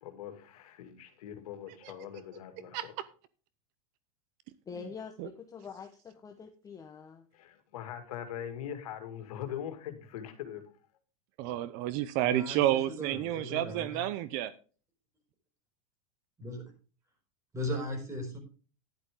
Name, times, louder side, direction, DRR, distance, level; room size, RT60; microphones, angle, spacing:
voice 1, 0.0-2.9 7.3-10.6, left 9 dB, 75° left, 6 dB, 2.2 m, -42 dB
voice 2, 4.7-7.3, left 6 dB, 20° left, 4 dB, 1.0 m, -45 dB
voice 3, 11.4-14.5, right 13 dB, 50° right, 16 dB, 0.7 m, -30 dB
voice 4, 12.2-14.0 16.4-16.6 17.5-18.4, left 1 dB, 15° right, 3 dB, 4.9 m, -37 dB
11.0 x 11.0 x 3.7 m, 0.37 s
supercardioid pair, 130°, 18 cm